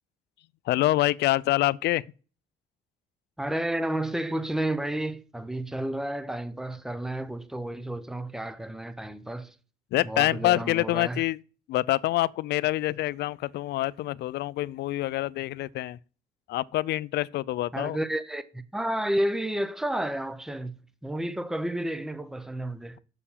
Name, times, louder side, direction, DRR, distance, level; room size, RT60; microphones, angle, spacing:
voice 1, 0.7-2.1 9.9-11.4 11.7-16.0 16.5-18.0, left 16 dB, 70° left, 0.4 m, -26 dB
voice 2, 3.4-9.5 10.0-11.2 17.7-23.0, right 1 dB, 5° right, 0.6 m, -31 dB
7.0 x 6.8 x 7.1 m
cardioid pair, 160°, 18 cm